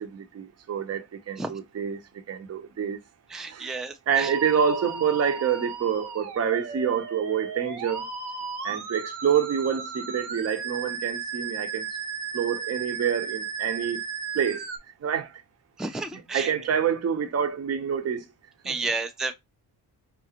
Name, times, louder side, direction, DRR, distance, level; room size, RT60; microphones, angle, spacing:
voice 1, 0.0-2.0 2.3-3.0 3.5-3.7 4.1-8.1 8.6-11.9 12.3-14.0 14.3-14.6 15.0-15.4 16.1-18.2 18.6-18.9, right 8 dB, 40° right, 0.8 m, -27 dB
voice 2, 3.3-4.3 15.8-16.5 18.6-19.3, right 3 dB, ahead, 0.4 m, -31 dB
Musical instrument, 4.1-14.8, right 5 dB, 80° right, 0.9 m, -35 dB
5.0 x 2.0 x 2.8 m
cardioid pair, 70°, 39 cm